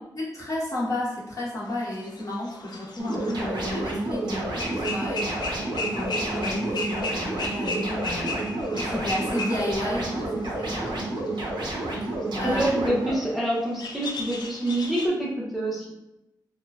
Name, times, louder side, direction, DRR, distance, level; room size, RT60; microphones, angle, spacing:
voice 1, 0.1-11.0 12.4-12.6, left 1 dB, 45° left, -5 dB, 0.9 m, -32 dB
sound 1, 1.9-4.2 4.6-15.1, left 2 dB, 65° left, 0.4 m, -35 dB
sound 2, 3.0-13.1, right 2 dB, 80° right, 0.6 m, -30 dB
voice 2, 12.5-15.9, right 1 dB, ahead, -5 dB, 0.5 m, -26 dB
3.1 x 2.1 x 2.2 m, 0.91 s
wide cardioid pair, 100°, 8 cm